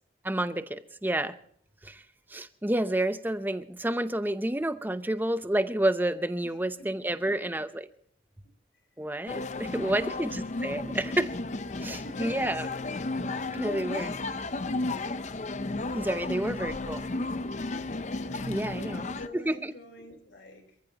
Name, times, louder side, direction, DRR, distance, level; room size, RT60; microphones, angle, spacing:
voice 1, 0.2-1.3 1.8-2.0 2.3-7.9 9.0-11.3 11.8-12.7 13.5-14.2 15.9-17.0 18.5-19.1 19.3-19.7, right 1 dB, 10° right, 11 dB, 0.7 m, -29 dB
voice 2, 6.4-7.2 9.6-11.1 11.8-12.5 18.1-20.8, left 1 dB, 75° left, 5 dB, 4.0 m, -49 dB
sound 1, 9.3-19.3, left 2 dB, 40° left, 0.6 m, -33 dB
27.5 x 14.5 x 2.9 m, 0.63 s
head